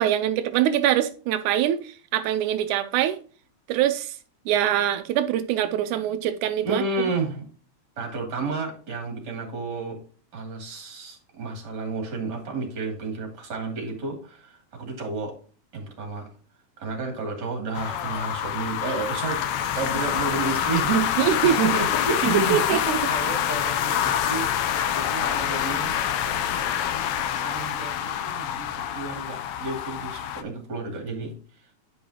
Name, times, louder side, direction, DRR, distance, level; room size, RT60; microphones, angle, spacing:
voice 1, 0.0-3.2 3.7-4.2 4.5-7.1 21.2-21.6 22.5-23.0, right 11 dB, 85° right, 2.1 m, -23 dB
voice 2, 6.6-7.4 8.0-10.0 10.3-15.3 15.7-16.3 16.8-24.5 24.9-26.5 27.4-31.3, right 4 dB, 35° right, 2.9 m, -31 dB
sound 1, 17.7-30.4, left 9 dB, 75° left, 1.8 m, -26 dB
10.5 x 5.4 x 2.8 m
omnidirectional pair, 3.5 m